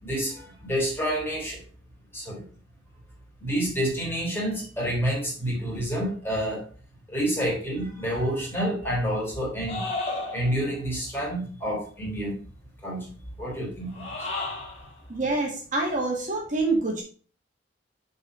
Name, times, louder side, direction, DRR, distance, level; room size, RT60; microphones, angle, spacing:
voice 1, 0.0-1.6 2.1-2.4 3.4-6.6 7.1-9.9 10.3-12.4 12.8-13.1 13.4-14.3, equal, 10° left, -4 dB, 3.1 m, -28 dB
sound 1, 9.7-10.8 13.9-14.9, left 2 dB, 35° left, 1.9 m, -33 dB
voice 2, 15.1-17.0, right 2 dB, 40° right, -1 dB, 1.7 m, -26 dB
6.8 x 4.2 x 4.9 m, 0.41 s
head